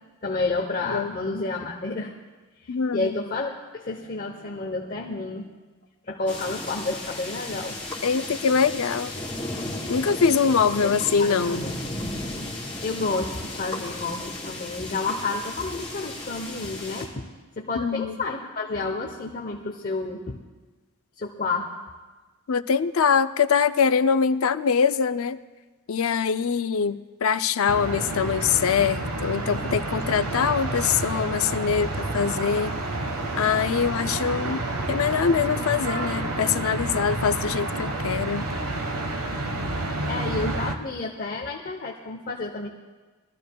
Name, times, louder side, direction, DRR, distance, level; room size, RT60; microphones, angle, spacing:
voice 1, 0.2-2.1 2.6-5.5 6.0-7.8 10.4-11.7 12.8-17.2 17.6-20.4 21.2-21.7 39.7-42.7, left 3 dB, 40° left, 0 dB, 0.8 m, -30 dB
voice 2, 2.7-3.2 8.0-9.1 9.9-11.6 17.7-18.2 22.5-25.4 25.9-32.7 33.4-34.6 34.9-38.5, left 6 dB, 70° left, 12 dB, 0.5 m, -23 dB
sound 1, 6.3-17.0, left 1 dB, 5° left, 3.3 m, -34 dB
sound 2, 27.7-40.7, right 2 dB, 90° right, 1.3 m, -29 dB
22.0 x 13.5 x 2.3 m, 1.3 s
head